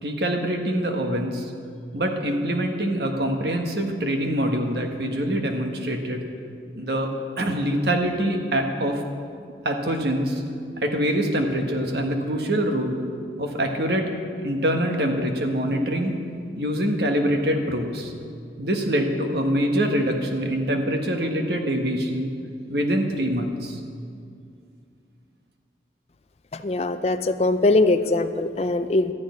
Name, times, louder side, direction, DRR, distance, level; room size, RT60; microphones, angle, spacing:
voice 1, 0.0-1.4 1.9-6.2 6.7-7.1 7.4-9.0 9.6-10.4 10.8-13.0 13.4-14.1 14.4-16.1 16.6-18.1 18.6-22.3 22.7-23.7, equal, 65° right, 3 dB, 1.4 m, -24 dB
voice 2, 26.5-29.1, left 2 dB, 35° left, 10 dB, 0.4 m, -21 dB
12.5 x 6.5 x 9.4 m, 2.4 s
head